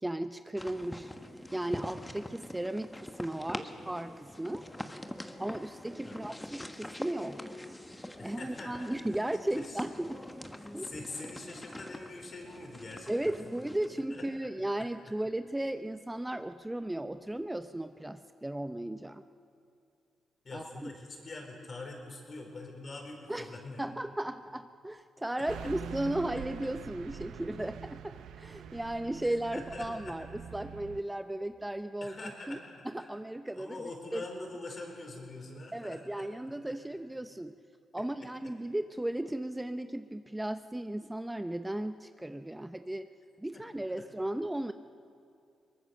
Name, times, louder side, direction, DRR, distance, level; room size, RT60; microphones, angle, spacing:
voice 1, 0.0-1.1 1.5-4.6 5.4-7.4 8.2-10.2 10.7-10.9 13.1-19.3 20.5-20.9 23.3-23.5 23.8-32.2 32.5-32.6 32.8-33.8 34.1-34.2 35.7-37.6 37.9-43.1 43.4-44.7, right 1 dB, 10° right, 10 dB, 0.6 m, -35 dB
sound 1, 0.6-13.9, left 1 dB, 10° left, 1.3 m, -44 dB
voice 2, 6.0-6.4 8.2-8.9 9.1-9.3 9.5-9.8 10.6-13.1 13.4-13.5 14.1-14.5 14.8-14.9 20.4-23.9 29.5-30.2 32.0-32.6 33.0-33.2 33.5-36.3 38.0-38.1 43.5-43.6, left 2 dB, 45° left, 2 dB, 4.7 m, -44 dB
Car passing by / Truck, 25.5-31.0, right 8 dB, 85° right, 0.8 m, -44 dB
22.5 x 19.0 x 6.6 m, 2.5 s
cardioid pair, 70°, 0 cm